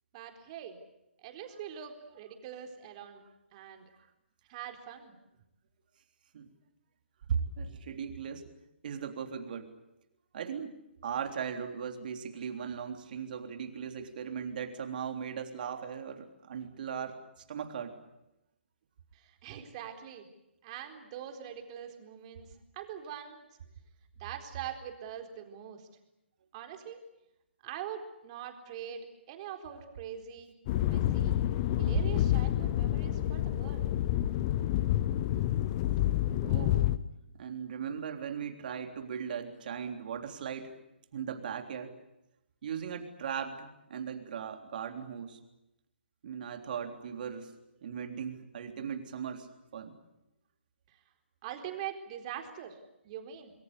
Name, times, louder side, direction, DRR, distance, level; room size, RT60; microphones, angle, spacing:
voice 1, 0.1-0.8 1.2-3.2 3.5-3.9 4.5-5.1 19.1-20.3 20.6-22.5 22.7-23.4 24.2-25.9 26.5-27.0 27.6-30.5 30.8-31.4 31.8-33.9 50.9-51.0 51.4-52.8 53.0-53.5, right 9 dB, 30° right, 5 dB, 4.2 m, -43 dB
voice 2, 7.3-8.5 8.8-9.7 10.3-17.2 17.5-18.0 36.4-37.0 37.4-40.7 41.1-41.9 42.6-45.4 46.2-47.5 47.8-49.9, right 7 dB, 50° right, 5 dB, 3.6 m, -38 dB
sound 1, 30.7-37.0, left 13 dB, 30° left, 1.0 m, -28 dB
28.0 x 21.5 x 8.3 m, 0.90 s
figure-of-eight pair, 140°, 6 cm